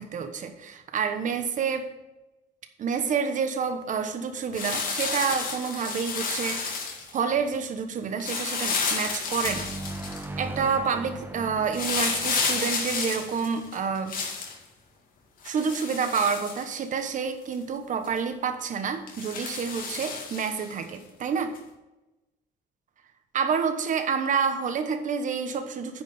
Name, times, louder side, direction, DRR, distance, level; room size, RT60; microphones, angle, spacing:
voice 1, 0.0-1.9 2.8-6.8 7.1-9.7 10.4-14.2 15.4-21.6 23.3-26.0, right 6 dB, 50° right, 8 dB, 1.2 m, -28 dB
sound 1, 4.5-7.2 8.2-10.2 11.7-14.5 15.4-17.1 17.5-17.6 18.0-18.2 19.1-20.7 21.5-21.6, left 4 dB, 55° left, 2.1 m, -31 dB
sound 2, 9.4-14.0, right 2 dB, 10° right, 0.8 m, -39 dB
9.3 x 5.1 x 6.7 m, 1.0 s
cardioid pair, 110°, 17 cm